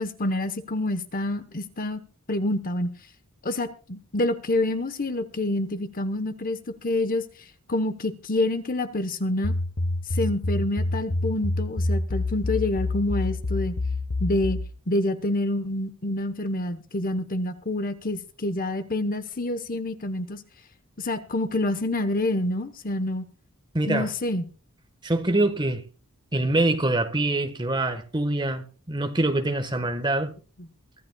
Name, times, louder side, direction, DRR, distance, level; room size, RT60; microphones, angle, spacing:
voice 1, 0.0-2.0 2.3-2.9 3.4-7.2 7.7-9.5 10.1-13.8 14.2-14.6 14.9-20.4 21.0-23.2 23.9-24.4 30.6-30.7, left 1 dB, 40° left, 1.0 m, -27 dB
sound 1, 9.4-14.7, left 2 dB, 85° left, 1.2 m, -27 dB
voice 2, 23.7-24.1 25.0-25.8 26.3-30.3, right 2 dB, 20° right, 1.3 m, -24 dB
23.5 x 12.5 x 2.3 m
head